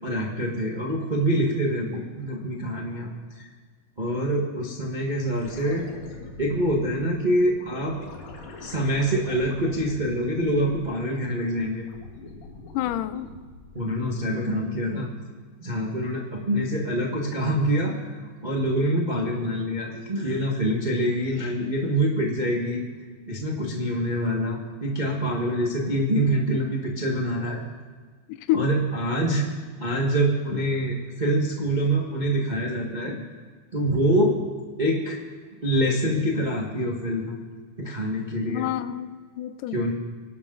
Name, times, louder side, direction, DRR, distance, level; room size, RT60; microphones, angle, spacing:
voice 1, 0.0-3.5 4.0-5.9 6.4-8.0 8.6-11.8 13.7-15.1 15.6-22.8 23.3-27.6 28.5-29.4 29.8-33.2 33.7-34.4 34.8-35.2 35.6-37.4 37.8-38.7 39.7-39.9, right 1 dB, 35° right, -1 dB, 0.7 m, -25 dB
sound 1, 5.3-11.1 11.5-14.0 16.5-16.6, left 3 dB, 55° left, 2.7 m, -43 dB
voice 2, 12.7-13.3 28.3-28.7 38.4-39.9, left 14 dB, 80° left, 13 dB, 2.1 m, -28 dB
25.0 x 11.5 x 3.9 m, 1.5 s
omnidirectional pair, 3.8 m